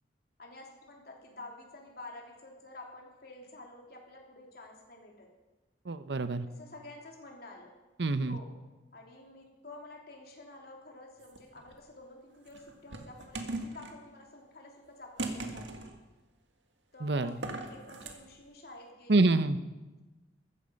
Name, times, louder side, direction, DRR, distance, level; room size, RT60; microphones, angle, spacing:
voice 1, 0.4-5.3 6.5-7.7 8.3-8.5 8.9-15.6 16.9-19.3, left 2 dB, 55° left, 0 dB, 3.2 m, -50 dB
voice 2, 5.9-6.5 8.0-8.4 17.0-17.4 19.1-19.6, right 2 dB, 70° right, 12 dB, 0.7 m, -26 dB
sound 1, 11.2-11.8 12.5-14.0 15.2-16.0 17.3-18.2, right 2 dB, 85° right, 1.8 m, -39 dB
14.0 x 14.0 x 5.2 m, 1.1 s
head